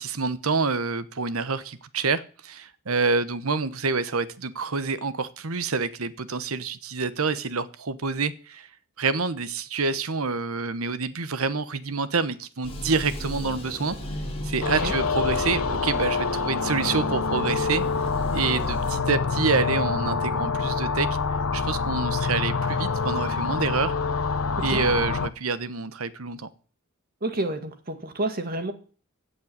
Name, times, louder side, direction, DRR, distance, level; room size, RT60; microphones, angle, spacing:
voice 1, 0.0-8.7 9.0-14.0 14.4-17.8 18.3-21.1 21.5-23.9 24.6-26.5, right 4 dB, 80° right, 14 dB, 1.1 m, -27 dB
sound 1, 12.6-19.0, equal, 30° left, 3.8 m, -35 dB
sound 2, 14.6-25.3, left 4 dB, 80° left, 1.0 m, -26 dB
voice 2, 27.2-28.7, right 2 dB, 45° right, 8 dB, 1.9 m, -29 dB
16.0 x 5.4 x 9.6 m, 0.40 s
head